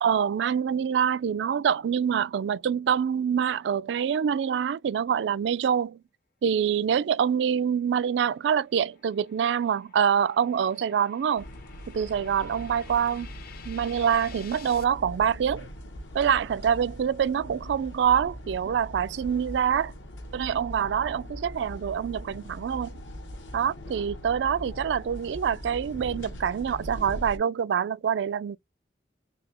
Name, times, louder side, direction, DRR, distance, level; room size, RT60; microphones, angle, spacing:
voice 1, 0.0-6.0 6.4-11.5 11.9-13.3 13.7-15.7 16.1-19.9 20.3-22.9 23.5-28.6, right 8 dB, 70° right, 0.3 m, -25 dB
sound 1, 8.0-14.8, left 8 dB, 55° left, 0.7 m, -51 dB
sound 2, 11.4-27.4, equal, 80° left, 1.0 m, -41 dB
3.9 x 2.8 x 2.9 m
head